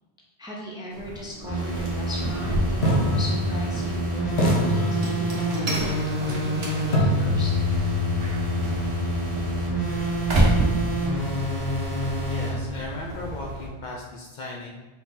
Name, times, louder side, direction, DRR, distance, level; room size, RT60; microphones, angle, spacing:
voice 1, 0.4-2.8 3.2-7.5, equal, 5° right, -3 dB, 0.5 m, -37 dB
sound 1, 0.9-13.7, right 1 dB, 75° right, 1.1 m, -31 dB
sound 2, 1.4-12.5, right 1 dB, 25° right, 1.2 m, -28 dB
sound 3, 1.7-1.9 2.8-4.0 4.4-5.6 6.9-10.8, left 2 dB, 80° left, 1.2 m, -27 dB
voice 2, 12.2-14.7, left 2 dB, 55° left, -2 dB, 0.6 m, -36 dB
4.6 x 3.9 x 2.6 m, 1.1 s
omnidirectional pair, 1.1 m